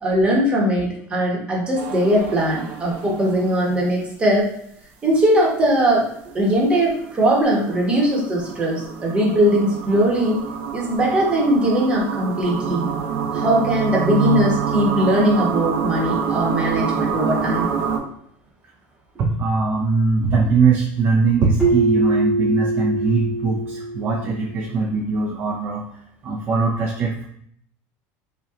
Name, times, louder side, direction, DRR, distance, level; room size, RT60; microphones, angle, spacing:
voice 1, 0.0-4.5 5.0-6.1 6.3-10.4 10.7-12.9 13.3-17.7, equal, 15° right, -3 dB, 1.0 m, -20 dB
sound 1, 1.7-3.9 6.3-18.0, right 7 dB, 85° right, 0.7 m, -26 dB
voice 2, 19.2-25.9 26.2-27.2, right 4 dB, 30° right, 0 dB, 0.4 m, -21 dB
Keyboard (musical), 21.6-24.4, right 3 dB, 10° left, 1.1 m, -22 dB
5.4 x 2.2 x 2.4 m, 0.68 s
cardioid pair, 160°, 7 cm